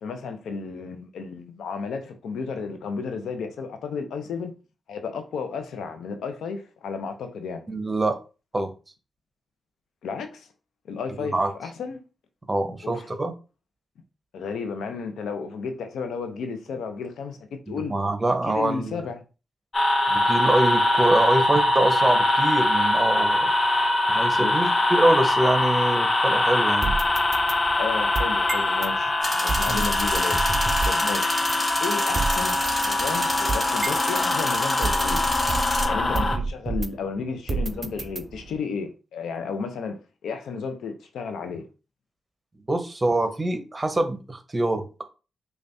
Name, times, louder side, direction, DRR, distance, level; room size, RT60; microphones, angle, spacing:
voice 1, 0.0-4.5 4.9-7.7 10.0-10.5 10.8-12.0 12.8-13.1 14.3-18.0 18.4-19.2 20.1-20.3 24.4-24.6 26.8-27.0 27.8-30.4 30.9-31.4 31.8-35.3 35.8-41.7, left 5 dB, 80° left, 0.5 m, -33 dB
voice 2, 7.7-8.2 8.5-8.7 11.2-11.5 12.5-13.3 17.9-19.0 20.3-23.5 24.1-26.9 29.7-29.9 42.7-44.9, right 1 dB, 30° right, 0.9 m, -24 dB
sound 1, 19.7-36.4, left 2 dB, 45° left, 0.8 m, -23 dB
sound 2, 26.8-28.9 29.5-31.1 31.5-31.6 32.1-34.3 34.8-37.1 37.5-38.6, right 3 dB, 45° right, 0.4 m, -30 dB
sound 3, 29.2-35.9, equal, 25° left, 1.5 m, -30 dB
5.2 x 2.3 x 2.6 m
supercardioid pair, 45°, 0 cm